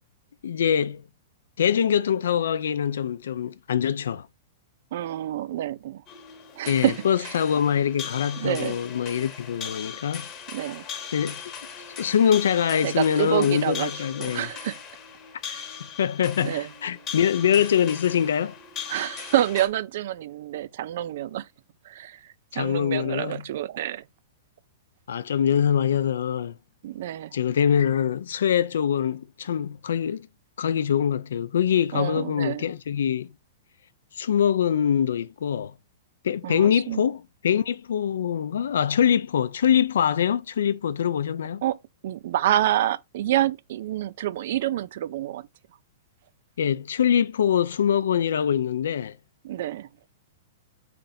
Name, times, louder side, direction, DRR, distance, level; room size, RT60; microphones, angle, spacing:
voice 1, 0.4-1.0 1.6-4.3 6.7-10.3 11.1-11.4 12.0-14.5 15.8-18.5 22.5-23.4 25.1-26.5 27.3-30.3 30.6-33.3 34.2-35.7 36.2-41.6 46.6-49.2, left 8 dB, 85° left, 0.5 m, -24 dB
voice 2, 4.9-6.0 6.6-7.4 8.4-8.8 10.5-10.8 12.8-14.8 15.5-15.7 16.4-16.7 18.9-21.5 21.9-24.0 26.8-27.4 31.9-32.7 36.4-37.0 41.6-41.8 42.0-45.5 49.4-49.9, right 13 dB, 60° right, 0.3 m, -28 dB
sound 1, 6.1-19.7, left 7 dB, 25° left, 1.0 m, -39 dB
3.8 x 3.4 x 4.1 m
hypercardioid pair, 160°, 0 cm